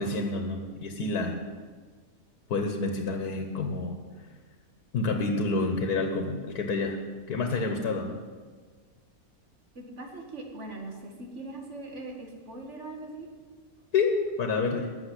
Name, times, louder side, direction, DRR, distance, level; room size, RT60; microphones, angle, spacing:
voice 1, 0.0-1.4 2.5-4.0 4.9-7.0 7.3-8.2 13.9-14.9, left 3 dB, 90° left, 5 dB, 1.7 m, -28 dB
voice 2, 9.7-13.3 14.6-14.8, right 2 dB, 50° right, 1 dB, 2.2 m, -41 dB
12.5 x 7.1 x 9.8 m, 1.5 s
omnidirectional pair, 1.6 m